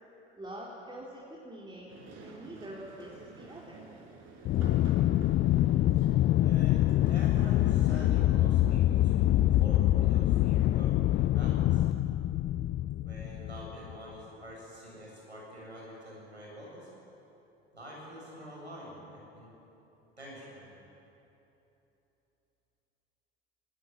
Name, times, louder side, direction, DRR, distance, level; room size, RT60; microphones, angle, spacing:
voice 1, 0.4-3.8, right 1 dB, 15° right, -5 dB, 4.1 m, -45 dB
sound 1, 1.9-8.1, right 3 dB, 50° right, 5.0 m, -51 dB
Aircraft, 4.5-13.9, left 14 dB, 35° left, 0.5 m, -25 dB
voice 2, 5.5-5.8 6.4-11.8 13.0-16.9 17.7-19.5 20.2-20.7, equal, 90° right, -4 dB, 7.9 m, -47 dB
20.0 x 19.5 x 9.5 m, 3.0 s
figure-of-eight pair, 65°, 32 cm